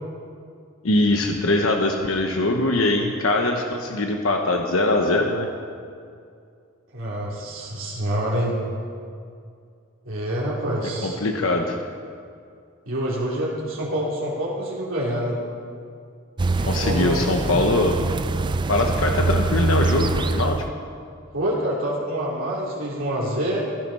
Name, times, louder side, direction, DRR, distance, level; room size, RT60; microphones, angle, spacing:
voice 1, 0.8-5.5 11.0-11.7 16.6-18.0 18.7-20.6, left 2 dB, 80° left, 2 dB, 1.0 m, -22 dB
voice 2, 6.9-8.5 10.1-11.2 12.9-15.4 16.6-17.2 21.3-23.6, right 1 dB, 70° right, -5 dB, 2.5 m, -26 dB
sound 1, 16.4-20.7, right 3 dB, 20° right, 0.3 m, -24 dB
15.5 x 12.5 x 5.6 m, 2.3 s
head